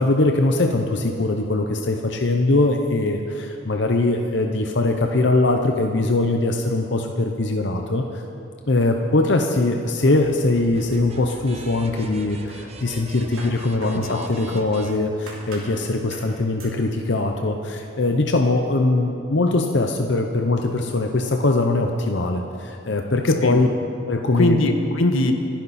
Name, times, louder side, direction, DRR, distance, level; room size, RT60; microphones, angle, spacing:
voice 1, 0.0-8.2 8.7-23.7 24.1-24.6, left 2 dB, 60° left, 3 dB, 0.8 m, -21 dB
sound 1, 10.2-15.8, right 2 dB, 30° right, 1.0 m, -42 dB
sound 2, 10.9-11.6 12.0-14.8 15.3-15.8 16.1-16.3 16.6-16.8, right 2 dB, 85° right, 2.9 m, -43 dB
voice 2, 13.9-14.7 23.4-23.6 24.3-25.3, left 1 dB, 90° left, 5 dB, 1.4 m, -22 dB
27.0 x 10.5 x 4.3 m, 2.8 s
head